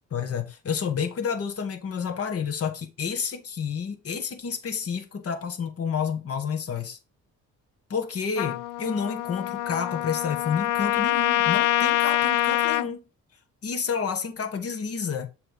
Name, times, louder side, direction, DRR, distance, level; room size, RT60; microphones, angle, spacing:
voice 1, 0.1-7.0 7.9-13.0 13.6-15.3, left 6 dB, 50° left, 1.6 m, -30 dB
Trumpet, 8.4-12.9, left 16 dB, 90° left, 0.5 m, -25 dB
6.9 x 3.4 x 5.6 m
cardioid pair, 90°, 30 cm